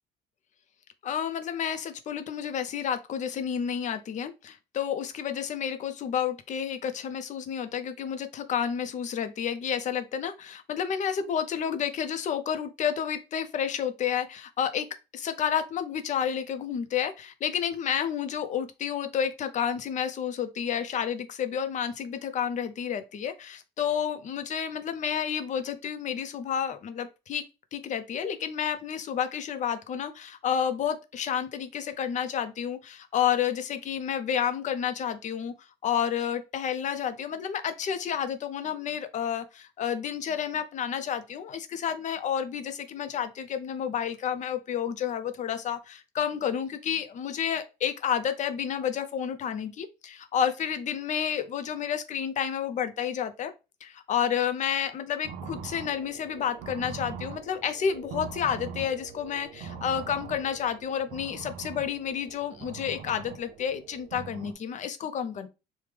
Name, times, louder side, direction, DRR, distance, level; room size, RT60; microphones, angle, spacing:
voice 1, 1.0-14.9 15.1-27.4 27.7-35.5 35.8-53.5 53.8-65.5, left 8 dB, 45° left, 0.5 m, -30 dB
sound 1, 55.2-64.5, right 6 dB, 85° right, 0.5 m, -42 dB
3.2 x 2.1 x 3.3 m
cardioid pair, 110°, 17 cm